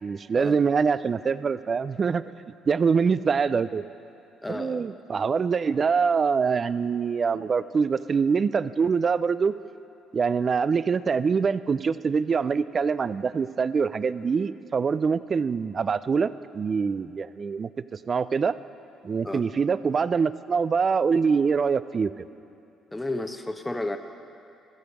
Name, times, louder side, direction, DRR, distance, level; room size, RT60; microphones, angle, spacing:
voice 1, 0.0-3.9 4.5-9.6 10.1-18.6 19.0-22.2, right 5 dB, 45° right, 16 dB, 0.3 m, -24 dB
voice 2, 4.4-4.8 19.2-19.4 22.9-24.0, left 2 dB, 10° left, 7 dB, 0.7 m, -32 dB
14.5 x 5.1 x 6.2 m, 2.7 s
hypercardioid pair, 55°, 0 cm